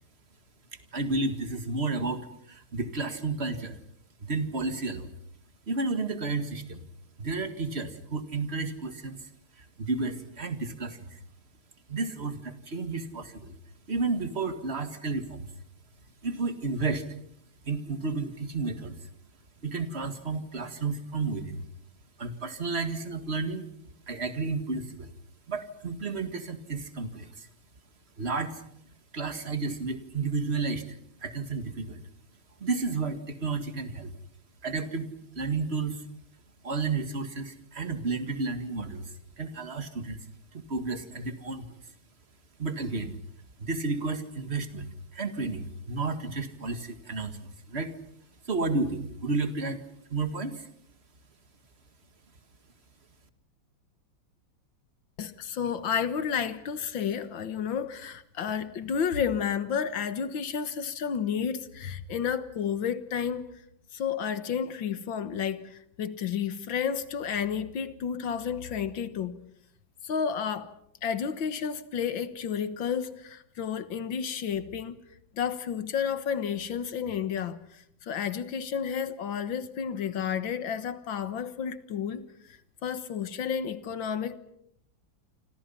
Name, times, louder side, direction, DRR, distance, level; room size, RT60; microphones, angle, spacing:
voice 1, 0.9-3.8 4.2-5.1 5.7-6.8 7.2-9.2 9.6-11.2 11.9-13.6 13.9-15.5 16.2-17.0 17.7-19.0 19.6-21.6 22.2-23.7 24.1-25.1 25.5-27.5 28.2-28.6 29.1-32.0 32.6-34.1 34.6-35.1 35.3-36.0 36.6-40.2 40.5-41.7 42.6-43.2 43.6-47.9 48.5-49.8 50.1-50.7, right 3 dB, 35° right, 2.1 m, -32 dB
voice 2, 55.2-63.5 63.9-69.4 70.0-70.7 71.0-75.0 75.3-82.2 82.8-84.3, left 7 dB, 75° left, 2.1 m, -31 dB
28.0 x 26.5 x 5.7 m
omnidirectional pair, 2.1 m